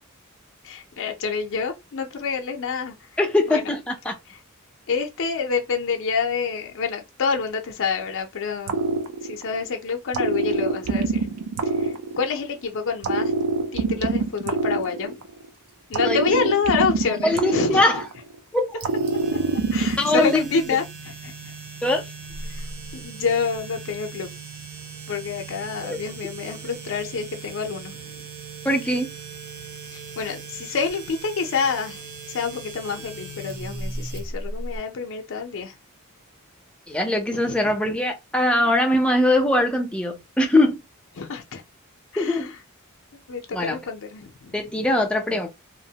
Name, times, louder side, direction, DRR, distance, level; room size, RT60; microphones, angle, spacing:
voice 1, 0.6-3.1 3.5-3.7 4.3-4.4 4.9-8.8 9.2-11.4 11.7-13.3 13.7-15.2 15.9-17.8 19.7-21.3 22.5-22.7 22.9-24.3 25.1-28.3 29.9-32.0 32.3-35.7 37.3-37.7 41.2-41.6 42.1-42.6 43.1-44.9, left 5 dB, 60° left, 0.5 m, -27 dB
voice 2, 3.2-4.1 16.0-16.4 17.2-18.0 18.5-18.7 19.8-20.5 21.8-22.0 25.9-26.0 28.6-29.1 36.9-40.8 42.2-42.5 43.5-43.8 44.5-45.5, left 1 dB, 5° left, 0.5 m, -22 dB
sound 1, 8.7-9.7 10.1-12.6 13.0-15.5 15.9-18.4 18.8-20.3, right 3 dB, 90° right, 0.5 m, -25 dB
sound 2, 18.8-34.8, right 3 dB, 45° right, 0.8 m, -38 dB
2.9 x 2.0 x 2.7 m
head